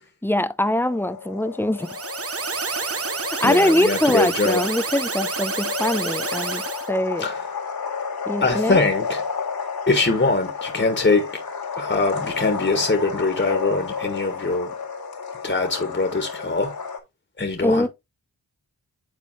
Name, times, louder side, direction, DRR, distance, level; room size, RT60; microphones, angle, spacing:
voice 1, 0.2-1.9 3.4-6.6 6.9-7.3 8.3-8.8 17.6-17.9, left 1 dB, 5° left, 0.7 m, -22 dB
sound 1, 0.6-17.0, left 6 dB, 65° left, 2.3 m, -32 dB
sound 2, 1.8-6.9, right 5 dB, 35° right, 0.9 m, -29 dB
voice 2, 3.4-4.6 7.2-7.4 8.4-9.2 9.9-11.3 11.8-14.7 15.4-16.7 17.4-17.9, left 3 dB, 30° left, 1.9 m, -22 dB
10.0 x 4.0 x 3.2 m
cardioid pair, 45°, 39 cm